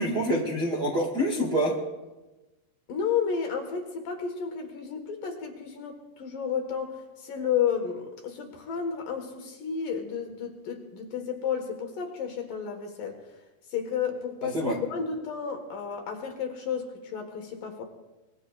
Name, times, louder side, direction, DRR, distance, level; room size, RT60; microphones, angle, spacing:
voice 1, 0.0-1.8 14.4-14.8, equal, 40° right, -2 dB, 1.5 m, -26 dB
voice 2, 2.9-6.9 7.2-13.2 13.7-17.8, left 7 dB, 60° left, 4 dB, 2.9 m, -32 dB
24.5 x 21.5 x 2.4 m, 1.1 s
omnidirectional pair, 4.8 m